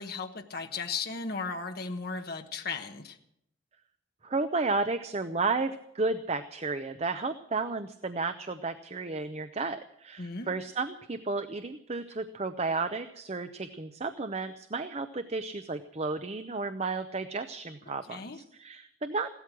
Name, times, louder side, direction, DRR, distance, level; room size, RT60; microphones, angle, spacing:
voice 1, 0.0-3.2 10.2-10.5 17.9-18.4, left 4 dB, 50° left, 4 dB, 1.2 m, -36 dB
voice 2, 4.2-19.3, right 3 dB, 35° right, 9 dB, 0.7 m, -33 dB
16.5 x 13.0 x 6.1 m, 0.76 s
head